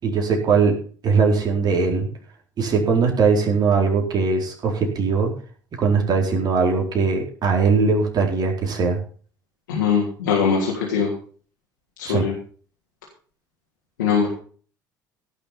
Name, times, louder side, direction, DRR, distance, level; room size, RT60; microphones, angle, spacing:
voice 1, 0.0-0.7 1.0-2.1 2.6-5.3 5.8-9.0 12.0-12.2, right 5 dB, 40° right, 1 dB, 4.3 m, -20 dB
voice 2, 9.7-11.1 12.0-12.3 14.0-14.3, left 6 dB, 75° left, -3 dB, 3.2 m, -21 dB
17.0 x 6.7 x 5.9 m, 0.43 s
figure-of-eight pair, 55°, 10 cm